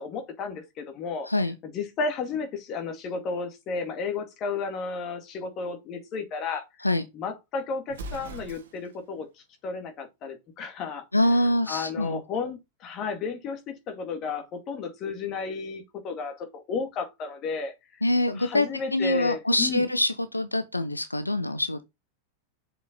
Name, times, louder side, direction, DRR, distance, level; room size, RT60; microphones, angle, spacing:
voice 1, 0.0-1.3 1.6-6.9 7.1-9.3 9.6-11.0 11.7-17.7 18.3-19.8, left 4 dB, 35° left, 2.2 m, -33 dB
Explosion, 7.9-9.0, right 2 dB, 60° right, 1.5 m, -40 dB
voice 2, 11.1-12.2 18.0-21.8, left 1 dB, 85° left, 0.6 m, -25 dB
6.7 x 5.4 x 3.9 m
figure-of-eight pair, 90°, 0 cm